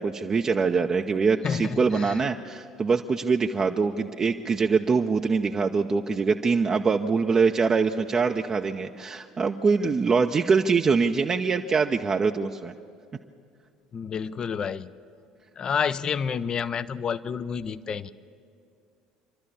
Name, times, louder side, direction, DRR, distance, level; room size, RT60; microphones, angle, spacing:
voice 1, 0.0-12.7, right 5 dB, 30° right, 4 dB, 0.7 m, -24 dB
voice 2, 1.4-2.1 13.9-14.9 15.6-18.1, left 6 dB, 35° left, 16 dB, 0.6 m, -29 dB
26.5 x 12.5 x 8.5 m, 2.3 s
figure-of-eight pair, 60°, 2 cm